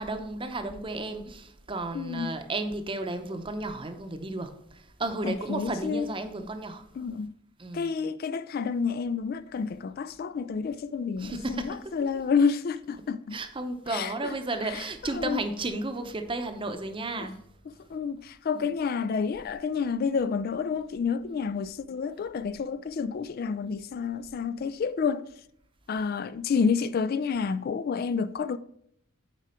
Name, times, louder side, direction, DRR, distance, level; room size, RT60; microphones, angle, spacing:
voice 1, 0.0-4.5 5.0-6.8 7.6-7.9 11.2-11.9 13.3-17.4 18.6-18.7, right 2 dB, 25° right, 0.8 m, -33 dB
voice 2, 1.9-2.4 5.2-6.1 7.0-7.3 7.7-13.4 13.9-14.4 14.6-15.4 17.2-17.3 17.7-25.3 25.9-28.6, left 5 dB, 50° left, 0.3 m, -29 dB
8.4 x 4.8 x 4.3 m
head